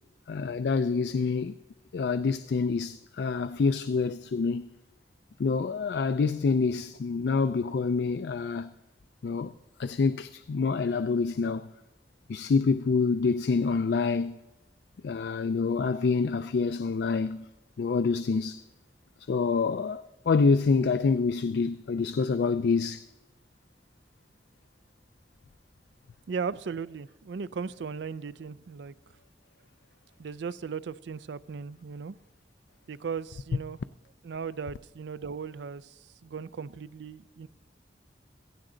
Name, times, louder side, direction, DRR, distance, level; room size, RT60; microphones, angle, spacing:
voice 1, 0.3-1.5 1.9-4.7 5.4-8.7 9.2-9.5 9.8-11.7 12.3-14.4 15.0-17.5 17.8-18.6 19.3-23.0, left 4 dB, 70° left, 0.4 m, -27 dB
voice 2, 26.3-28.9 30.2-32.2 32.9-33.8 34.2-35.9 36.2-37.5, right 6 dB, 80° right, 0.4 m, -37 dB
16.0 x 15.0 x 3.9 m
head